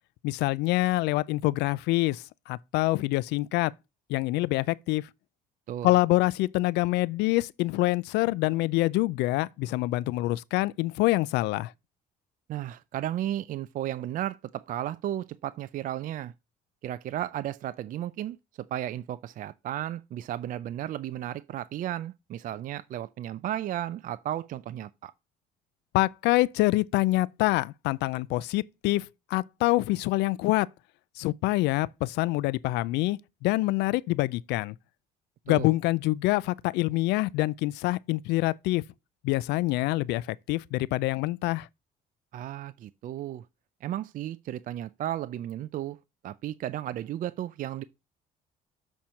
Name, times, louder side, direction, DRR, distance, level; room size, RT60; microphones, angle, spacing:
voice 1, 0.2-3.7 4.1-5.1 5.8-11.7 25.9-29.0 29.3-30.7 31.2-34.7 35.5-38.8 39.2-41.7, left 19 dB, 90° left, 0.4 m, -26 dB
voice 2, 12.5-16.3 16.8-18.4 18.7-25.1 35.5-35.7 42.3-43.5 43.8-46.0 46.2-47.8, right 12 dB, 55° right, 0.4 m, -34 dB
7.1 x 4.4 x 6.2 m
cardioid pair, 110°, 17 cm